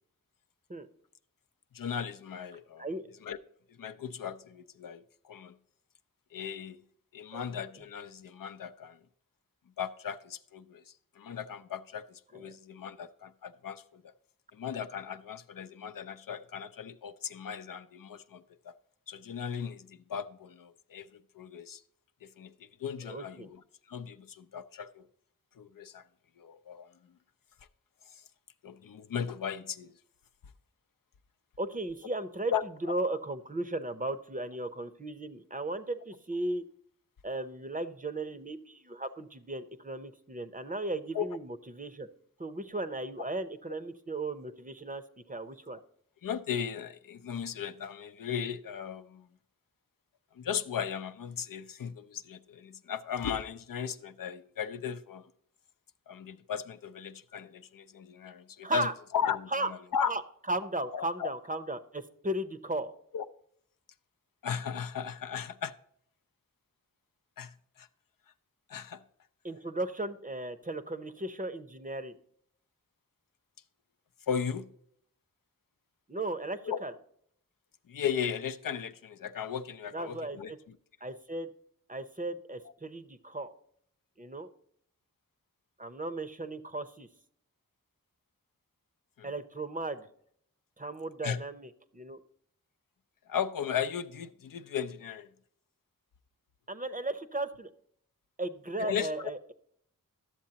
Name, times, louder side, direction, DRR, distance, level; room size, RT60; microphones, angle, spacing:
voice 1, 1.7-2.9 3.2-3.4 3.8-5.5 6.3-6.8 7.1-9.0 9.8-14.0 14.5-18.7 19.1-21.8 22.2-23.6 23.9-25.1 25.6-26.0 26.4-26.9 28.1-28.2 28.6-29.9 32.5-32.6 41.1-41.3 46.2-49.3 50.3-55.3 56.1-60.1 60.9-61.3 63.1-63.3 64.4-65.7 67.4-67.9 68.7-69.0 74.3-74.7 76.7-76.8 77.9-80.5 89.2-89.3 91.2-91.4 93.3-95.3 98.8-99.1, left 8 dB, 70° left, 0.5 m, -36 dB
voice 2, 23.1-23.5 31.6-36.6 37.2-42.1 42.4-45.8 58.6-58.9 59.5-59.7 60.1-60.2 60.5-62.9 69.4-72.1 76.1-76.9 79.9-80.6 81.0-81.5 81.9-83.5 84.2-84.5 85.8-87.1 89.2-90.1 90.8-92.2 96.7-97.7 98.4-99.5, right 2 dB, 25° right, 0.7 m, -36 dB
12.0 x 7.1 x 2.8 m
cardioid pair, 40°, 34 cm